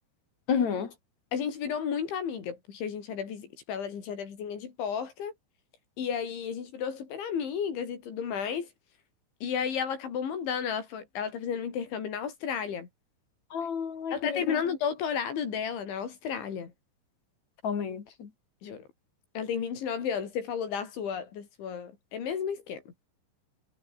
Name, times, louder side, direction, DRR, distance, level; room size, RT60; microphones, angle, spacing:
voice 1, 0.5-0.9 13.5-14.4 17.6-18.3, left 6 dB, 40° left, 3.2 m, -30 dB
voice 2, 1.3-5.3 6.0-8.7 9.4-12.9 14.1-16.7 18.6-18.9 19.4-23.1, left 7 dB, 65° left, 6.3 m, -33 dB
omnidirectional pair, 5.8 m